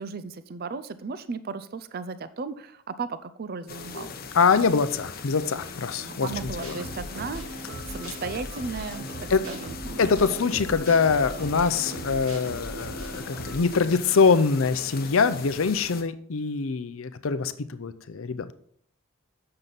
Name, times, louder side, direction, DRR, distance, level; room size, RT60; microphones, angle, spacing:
voice 1, 0.0-4.1 6.0-7.4 7.9-10.0, right 4 dB, 45° right, 13 dB, 0.4 m, -35 dB
sound 1, 3.7-16.0, left 4 dB, 45° left, 0.9 m, -40 dB
voice 2, 4.3-6.8 9.3-9.5 10.0-18.5, left 5 dB, 65° left, 12 dB, 0.6 m, -24 dB
sound 2, 6.3-13.6, right 1 dB, 75° right, 2.9 m, -39 dB
7.5 x 6.6 x 4.0 m, 0.62 s
head